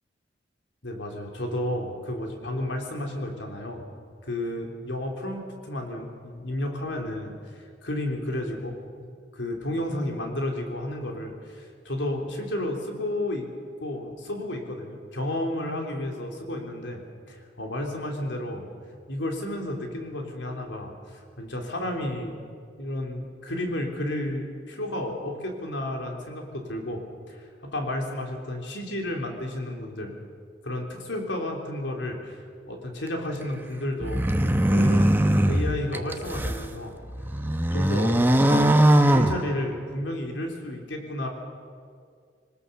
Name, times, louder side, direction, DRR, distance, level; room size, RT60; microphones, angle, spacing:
voice 1, 0.8-3.8 4.3-9.1 9.3-13.5 13.8-17.0 17.3-18.7 19.1-22.4 22.8-27.0 27.3-30.2 30.6-32.4 32.7-34.3 34.7-37.0 37.7-41.3, left 1 dB, 75° left, 2 dB, 3.6 m, -32 dB
sound 1, 34.0-36.7 37.1-40.0, right 1 dB, 10° right, 0.8 m, -21 dB
23.0 x 19.5 x 7.0 m, 2.1 s
head